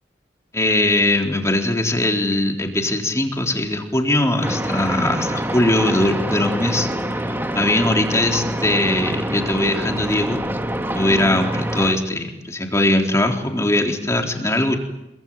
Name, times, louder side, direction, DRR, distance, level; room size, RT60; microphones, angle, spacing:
voice 1, 0.5-6.9 7.5-10.4 10.9-14.8, left 1 dB, 15° left, 2 dB, 3.9 m, -20 dB
sound 1, 4.4-11.9, right 1 dB, 10° right, 1.8 m, -26 dB
27.0 x 24.0 x 9.0 m, 0.93 s
head